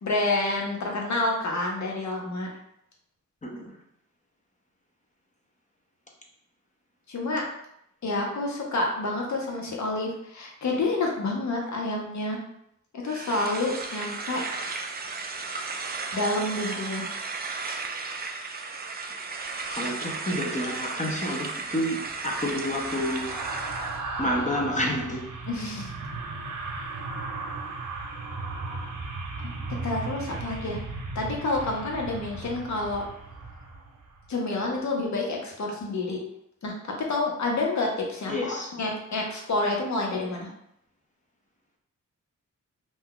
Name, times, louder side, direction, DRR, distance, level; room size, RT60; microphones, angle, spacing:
voice 1, 0.0-2.5 7.1-7.4 8.0-12.4 12.9-14.5 16.1-17.1 25.5-25.9 29.8-30.8 31.1-33.0 34.3-36.2 36.6-36.7 37.1-40.5, left 2 dB, 60° left, 0 dB, 0.9 m, -28 dB
sound 1, 13.1-24.0, right 4 dB, 30° right, 0.4 m, -35 dB
voice 2, 19.7-22.0 22.2-23.3 24.2-25.2 38.3-38.7, left 1 dB, 25° left, -1 dB, 0.7 m, -29 dB
sound 2, 21.0-34.3 34.6-34.8, right 3 dB, 75° right, 0.7 m, -36 dB
2.6 x 2.3 x 3.8 m, 0.75 s
cardioid pair, 75°, 31 cm